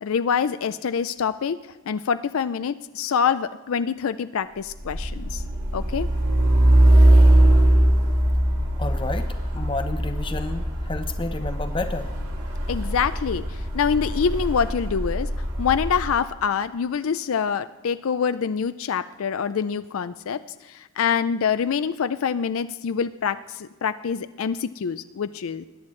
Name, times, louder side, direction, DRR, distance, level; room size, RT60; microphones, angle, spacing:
voice 1, 0.0-1.6 1.9-5.4 5.7-6.1 12.7-15.3 15.6-25.7, left 6 dB, 70° left, 12 dB, 0.4 m, -25 dB
Truck, 4.7-16.1, right 1 dB, 85° right, 2.4 m, -21 dB
voice 2, 8.8-12.1, left 2 dB, 20° left, 7 dB, 0.8 m, -31 dB
21.0 x 10.0 x 3.2 m, 1.2 s
head